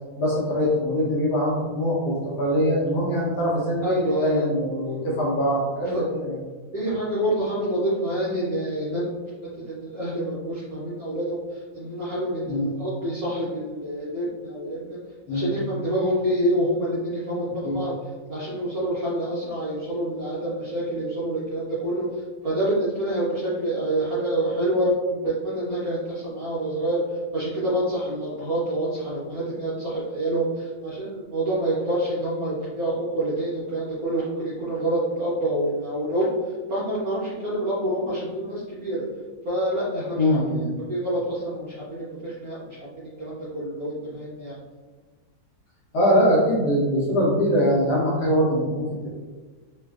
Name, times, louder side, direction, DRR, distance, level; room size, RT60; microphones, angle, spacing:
voice 1, 0.2-3.9 4.2-6.4 12.5-12.7 15.3-15.5 17.6-17.8 40.1-40.7 45.9-48.9, equal, 70° left, -5 dB, 1.0 m, -22 dB
voice 2, 3.8-4.5 5.9-6.0 6.7-9.1 9.5-11.4 11.8-15.0 15.3-17.9 18.3-22.1 22.4-27.0 27.3-36.3 36.7-39.0 39.4-40.3 40.9-42.8 43.2-44.6, right 1 dB, 70° right, -8 dB, 0.8 m, -27 dB
3.2 x 2.3 x 2.3 m, 1.4 s
omnidirectional pair, 2.2 m